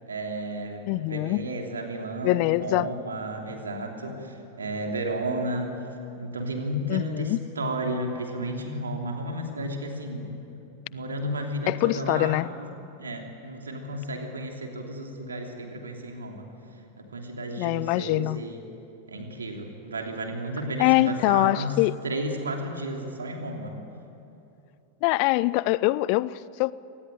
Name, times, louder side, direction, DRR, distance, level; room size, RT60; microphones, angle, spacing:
voice 1, 0.1-5.8 6.2-10.4 10.9-12.7 13.0-16.5 17.0-18.6 19.1-21.8 22.0-23.7, right 1 dB, 75° right, 3 dB, 3.2 m, -33 dB
voice 2, 0.9-1.4 2.2-2.9 6.9-7.4 11.7-12.5 17.6-18.4 20.8-21.9 25.0-26.7, left 19 dB, 45° left, 20 dB, 0.5 m, -23 dB
24.0 x 19.5 x 9.2 m, 2.9 s
figure-of-eight pair, 90°, 0 cm